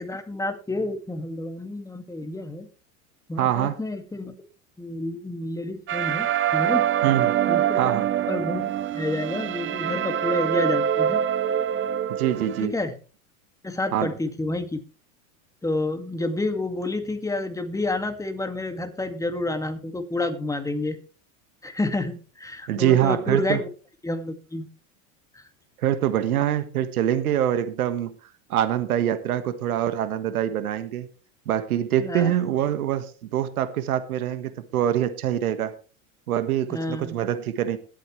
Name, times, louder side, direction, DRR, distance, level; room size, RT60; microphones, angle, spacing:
voice 1, 0.0-2.7 3.3-4.3 4.8-6.9 7.5-8.0 8.2-11.2 12.6-13.0 13.6-14.8 15.6-21.0 21.6-23.7 24.0-24.7 25.3-25.4 32.0-32.3 36.7-37.2, left 2 dB, 10° left, 7 dB, 2.2 m, -29 dB
voice 2, 3.4-3.8 7.0-7.3 7.8-8.1 12.1-12.7 13.9-14.1 22.7-23.6 25.8-28.1 28.5-31.1 31.5-35.7 36.3-37.8, right 11 dB, 90° right, 10 dB, 1.6 m, -24 dB
sound 1, 5.9-12.7, right 10 dB, 30° right, 0.9 m, -24 dB
21.0 x 8.5 x 3.3 m, 0.37 s
supercardioid pair, 110°, 42 cm